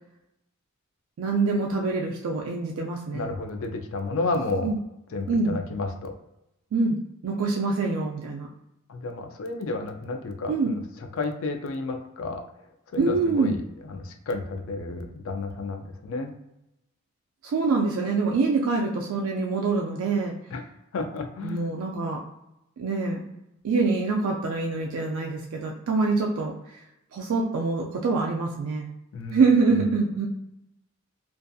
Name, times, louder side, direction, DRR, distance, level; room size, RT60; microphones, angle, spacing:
voice 1, 1.2-3.3 4.6-4.8 5.3-5.6 6.7-8.5 10.5-10.7 13.0-13.5 17.4-20.3 21.4-22.2 22.8-23.3 23.6-26.6 27.1-28.9 29.3-30.3, right 4 dB, 65° right, 0 dB, 0.3 m, -25 dB
voice 2, 3.1-4.7 5.1-6.2 8.9-12.4 12.9-16.3 20.5-20.6 20.9-21.7 29.1-29.9, left 3 dB, 65° left, 5 dB, 0.4 m, -31 dB
2.5 x 2.5 x 2.3 m, 0.86 s
head